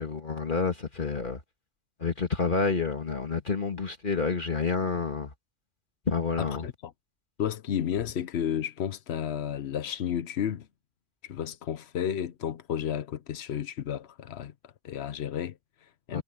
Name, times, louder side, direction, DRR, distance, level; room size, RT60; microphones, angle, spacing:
voice 1, 0.0-1.4 2.0-5.3 6.1-6.7 16.1-16.2, left 4 dB, 50° left, 2.0 m, -29 dB
voice 2, 6.4-6.9 7.4-10.7 11.2-16.2, left 9 dB, 85° left, 1.0 m, -32 dB
omnidirectional pair, 1.1 m